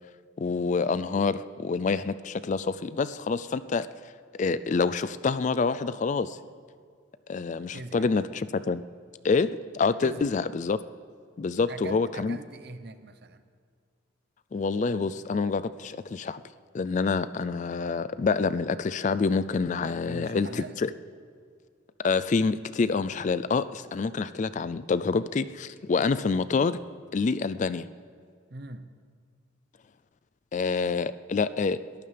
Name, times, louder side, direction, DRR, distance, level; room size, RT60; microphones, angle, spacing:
voice 1, 0.4-3.9 4.4-6.4 7.3-8.8 9.2-10.8 11.4-12.4 14.5-16.4 16.7-20.9 22.0-26.8 27.1-27.9 30.5-31.8, left 4 dB, 40° left, 15 dB, 0.3 m, -27 dB
voice 2, 7.7-8.2 10.0-10.4 11.7-13.4 20.1-20.8 28.5-28.9, right 2 dB, 55° right, 10 dB, 0.8 m, -42 dB
22.0 x 14.0 x 3.4 m, 2.1 s
head